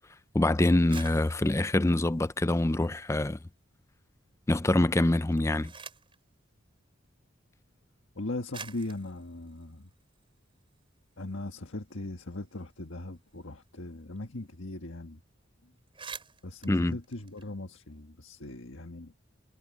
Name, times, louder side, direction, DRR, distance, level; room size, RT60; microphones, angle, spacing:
voice 1, 0.3-3.4 4.5-5.7 16.7-17.0, left 1 dB, 15° left, 0.5 m, -25 dB
sound 1, 0.9-3.3 3.7-4.3 5.1-6.2 7.3-7.4 8.1-8.2 8.5-10.8 11.2-11.3 11.5-14.2 14.4-14.5 14.8-15.1 15.4-15.5 15.8-18.0, right 5 dB, 25° right, 5.0 m, -49 dB
voice 2, 8.1-9.9 11.2-15.2 16.4-19.1, left 2 dB, 75° left, 1.6 m, -39 dB
head